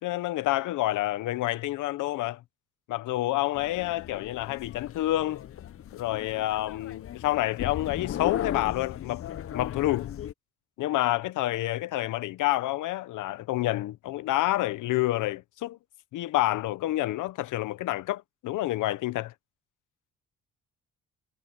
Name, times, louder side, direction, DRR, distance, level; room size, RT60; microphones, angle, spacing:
voice 1, 0.0-2.4 2.9-5.4 5.9-9.3 9.5-10.1 10.8-15.8 16.1-19.3, left 16 dB, 85° left, 1.0 m, -28 dB
sound 1, 3.5-10.3, left 10 dB, 50° left, 0.6 m, -37 dB
cardioid pair, 90°, 30 cm